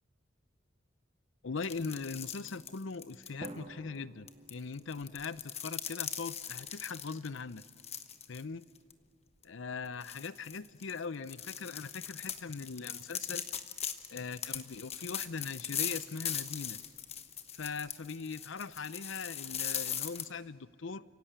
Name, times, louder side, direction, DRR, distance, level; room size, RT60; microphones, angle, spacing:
voice 1, 1.4-7.6 8.3-8.6 9.4-13.4 14.1-16.8 17.5-21.0, left 4 dB, 70° left, 16 dB, 0.7 m, -40 dB
sound 1, 1.6-3.5 4.3-8.4 8.8-8.9 9.4-9.5 10.0-20.2, left 9 dB, 35° left, 1.1 m, -40 dB
Drum, 3.4-5.5, right 2 dB, 30° right, 1.9 m, -50 dB
30.0 x 17.0 x 8.7 m, 2.6 s
head